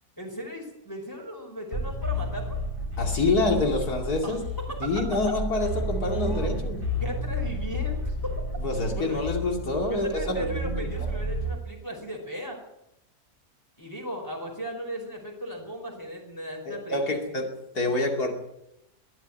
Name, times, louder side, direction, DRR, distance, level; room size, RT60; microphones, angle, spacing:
voice 1, 0.2-2.6 4.2-4.7 6.1-6.7 7.0-8.4 8.9-9.2 9.9-12.6 13.8-17.2, equal, 15° left, 0 dB, 5.2 m, -36 dB
sound 1, 1.7-11.5, equal, 35° left, 8.3 m, -31 dB
voice 2, 3.0-4.4 4.8-6.9 8.6-11.1 16.7-17.5 17.7-18.3, left 2 dB, 90° left, 2 dB, 3.1 m, -27 dB
23.0 x 13.0 x 9.1 m, 0.86 s
omnidirectional pair, 1.6 m